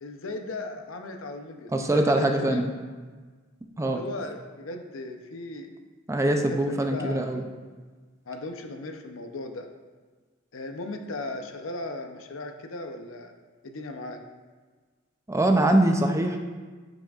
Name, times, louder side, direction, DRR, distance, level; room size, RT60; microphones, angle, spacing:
voice 1, 0.0-2.7 3.8-5.7 6.2-6.4 6.6-7.3 8.3-9.7 10.5-13.3 13.6-14.2, left 2 dB, 75° left, 5 dB, 0.7 m, -37 dB
voice 2, 1.7-2.7 3.8-4.0 6.1-7.4 15.3-16.4, right 1 dB, 15° right, 4 dB, 0.5 m, -23 dB
9.9 x 6.0 x 2.4 m, 1.4 s
head